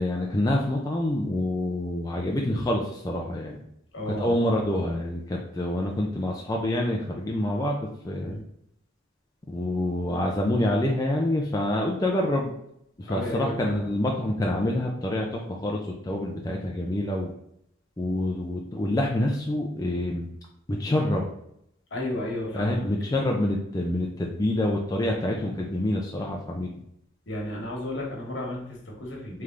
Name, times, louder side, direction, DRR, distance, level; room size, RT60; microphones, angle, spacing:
voice 1, 0.0-3.6 4.1-8.4 9.5-12.5 13.0-15.8 16.1-17.3 18.0-20.3 20.8-21.3 22.5-26.7, left 1 dB, 20° left, -1 dB, 0.4 m, -27 dB
voice 2, 3.9-4.3 8.2-8.4 13.1-13.9 21.9-22.9 27.3-29.4, left 1 dB, 65° left, -2 dB, 1.3 m, -33 dB
3.5 x 3.3 x 3.7 m, 0.75 s
head